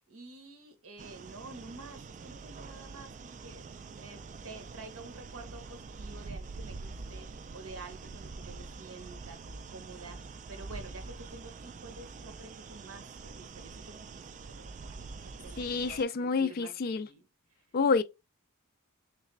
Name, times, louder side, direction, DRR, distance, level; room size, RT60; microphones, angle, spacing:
voice 1, 0.1-7.3 7.5-15.1 15.4-17.3, right 3 dB, 65° right, 1.0 m, -49 dB
sound 1, 1.0-16.0, right 4 dB, 35° right, 0.3 m, -45 dB
voice 2, 15.6-17.1 17.7-18.0, left 4 dB, 40° left, 0.3 m, -28 dB
3.3 x 3.2 x 3.1 m
head